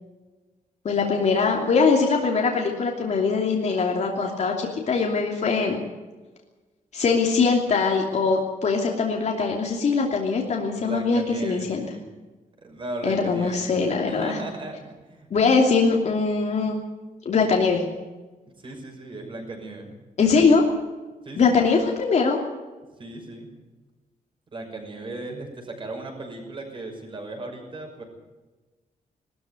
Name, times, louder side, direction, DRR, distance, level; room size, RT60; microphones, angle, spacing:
voice 1, 0.8-5.8 6.9-11.8 13.0-14.4 15.3-16.7 17.2-17.8 20.2-20.6 21.4-22.4, left 4 dB, 55° left, 0 dB, 2.9 m, -22 dB
voice 2, 10.7-12.0 12.6-13.7 14.1-15.3 18.6-19.9 21.2-21.6 23.0-23.5 24.5-28.0, right 2 dB, 35° right, 2 dB, 6.0 m, -36 dB
20.5 x 13.5 x 9.7 m, 1.2 s
wide cardioid pair, 140°, 14 cm